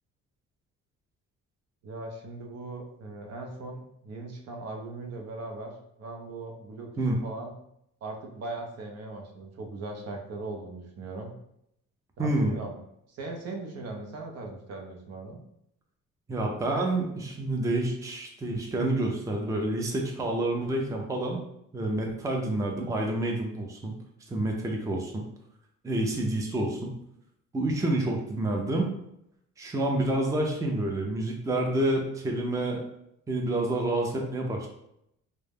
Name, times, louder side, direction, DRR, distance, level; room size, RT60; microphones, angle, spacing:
voice 1, 1.8-5.7 6.0-6.9 7.2-7.5 8.0-11.3 12.2-12.8 13.1-15.4, right 2 dB, 55° right, 2 dB, 0.6 m, -39 dB
voice 2, 12.2-12.5 16.3-21.4 21.7-23.9 24.3-25.2 25.8-26.9 27.5-28.9 29.6-32.8 33.3-34.7, right 1 dB, 10° right, 1 dB, 0.4 m, -28 dB
2.2 x 2.0 x 3.3 m, 0.77 s
cardioid pair, 90°, 30 cm